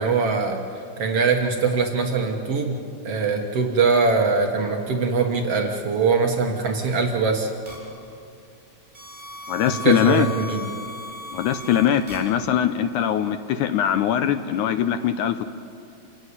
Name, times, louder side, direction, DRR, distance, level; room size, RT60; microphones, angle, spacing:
voice 1, 0.0-7.5 9.7-10.6, right 4 dB, 55° right, 3 dB, 2.0 m, -22 dB
sound 1, 7.7-7.8 8.9-12.2, left 2 dB, 10° right, 7.3 m, -36 dB
voice 2, 9.5-10.3 11.3-15.5, left 9 dB, 75° left, 10 dB, 2.0 m, -21 dB
28.5 x 15.5 x 9.6 m, 2.5 s
omnidirectional pair, 4.0 m